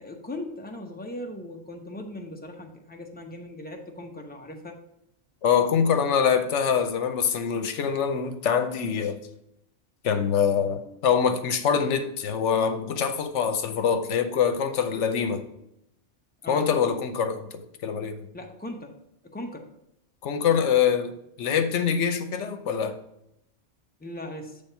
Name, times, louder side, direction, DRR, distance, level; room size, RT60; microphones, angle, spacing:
voice 1, 0.0-4.8 16.4-16.7 18.3-18.9 19.2-19.7 24.0-24.6, left 1 dB, 10° left, 0.7 m, -38 dB
voice 2, 5.4-9.2 10.0-15.4 16.5-18.2 20.2-23.0, left 7 dB, 75° left, 1.0 m, -24 dB
8.6 x 3.5 x 5.6 m
omnidirectional pair, 1.2 m